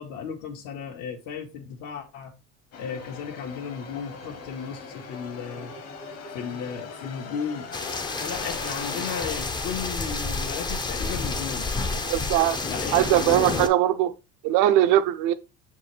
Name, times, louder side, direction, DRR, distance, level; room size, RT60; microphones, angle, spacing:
voice 1, 0.0-2.3 2.8-5.7 6.3-7.7 8.2-11.7 11.9-12.1 12.6-13.1, left 7 dB, 80° left, 2.0 m, -35 dB
sound 1, 2.7-9.4, left 4 dB, 50° left, 1.4 m, -41 dB
sound 2, 7.7-13.7, left 3 dB, 15° left, 0.6 m, -29 dB
voice 2, 12.1-12.6 12.9-14.1 14.4-15.3, right 13 dB, 75° right, 0.8 m, -20 dB
7.1 x 4.7 x 3.4 m
cardioid pair, 150°, 31 cm